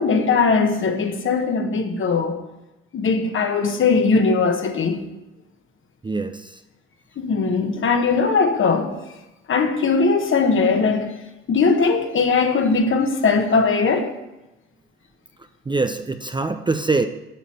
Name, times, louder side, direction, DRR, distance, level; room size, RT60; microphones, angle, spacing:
voice 1, 0.0-2.4 2.9-5.0 7.2-9.0 9.5-11.1 11.5-14.1, left 4 dB, 40° left, 1.5 m, -19 dB
voice 2, 6.0-6.6 15.7-17.1, right 3 dB, 15° right, 0.6 m, -23 dB
11.0 x 4.1 x 7.7 m
hypercardioid pair, 65°, 30 cm